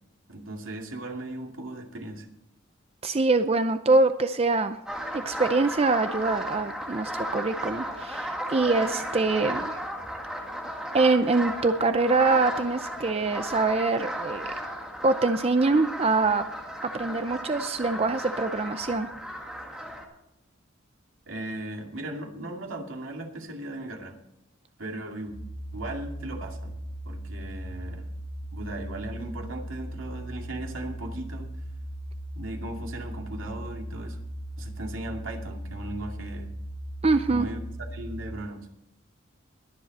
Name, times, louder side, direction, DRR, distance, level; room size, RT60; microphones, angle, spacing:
voice 1, 0.3-2.3 21.3-24.2 24.8-25.3 25.7-26.8 27.1-28.1 28.5-31.5 32.3-34.2 34.6-36.5 37.3-37.6 37.9-38.7, right 1 dB, 80° right, 2 dB, 2.4 m, -37 dB
voice 2, 3.0-4.8 5.1-9.8 10.9-14.5 15.0-16.4 16.9-19.1 37.0-37.5, right 3 dB, 30° right, 9 dB, 0.5 m, -24 dB
sound 1, 4.9-20.0, equal, 5° right, 1.9 m, -35 dB
sound 2, 25.3-38.3, right 1 dB, 25° left, 2.1 m, -38 dB
21.5 x 7.6 x 4.2 m, 0.87 s
head